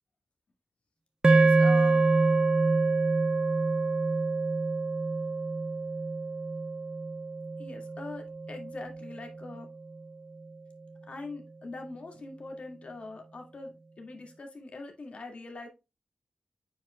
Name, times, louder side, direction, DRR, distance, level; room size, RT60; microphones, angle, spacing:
sound 1, 1.2-9.6, right 3 dB, 35° right, 0.4 m, -26 dB
voice 1, 1.3-2.0 7.6-9.7 11.1-15.7, left 3 dB, 55° left, 3 dB, 1.9 m, -42 dB
8.6 x 5.1 x 2.2 m, 0.26 s
wide cardioid pair, 80°, 2 cm